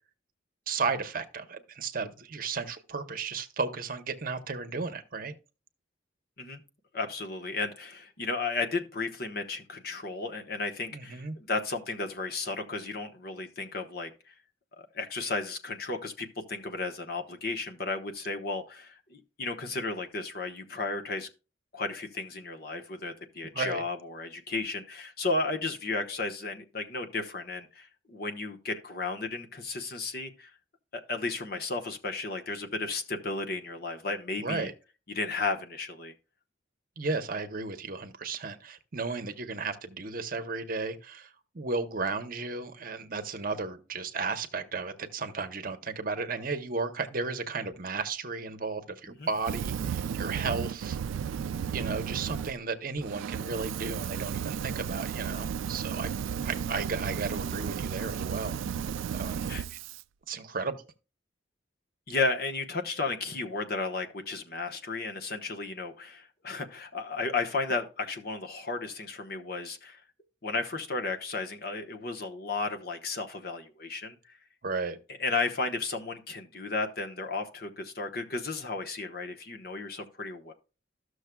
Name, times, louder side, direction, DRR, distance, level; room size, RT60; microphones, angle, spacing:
voice 1, 0.7-5.3 10.9-11.4 23.5-23.8 34.4-34.7 37.0-51.0 51.7-56.1 56.4-58.6 59.1-59.8 60.3-60.8 74.6-75.0, right 4 dB, 45° right, 0.8 m, -34 dB
voice 2, 6.9-14.3 14.8-21.3 21.7-30.5 30.9-34.7 35.1-36.1 49.2-49.3 59.5-59.6 62.1-70.0 70.4-74.4 75.2-80.5, left 3 dB, 50° left, 1.0 m, -34 dB
Fire, 49.4-52.5 53.0-60.0, right 7 dB, 85° right, 0.3 m, -34 dB
13.5 x 6.4 x 2.2 m
head